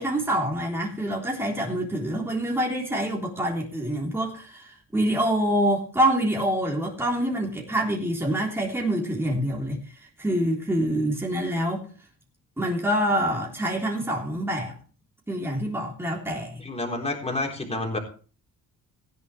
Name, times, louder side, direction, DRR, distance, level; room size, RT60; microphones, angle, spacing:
voice 1, 0.0-9.8 10.2-11.9 12.6-14.7 15.3-16.6, right 1 dB, 5° right, -2 dB, 3.6 m, -26 dB
voice 2, 16.6-18.0, left 2 dB, 15° left, 0 dB, 3.9 m, -29 dB
16.0 x 10.5 x 3.3 m, 0.39 s
cardioid pair, 100°, 36 cm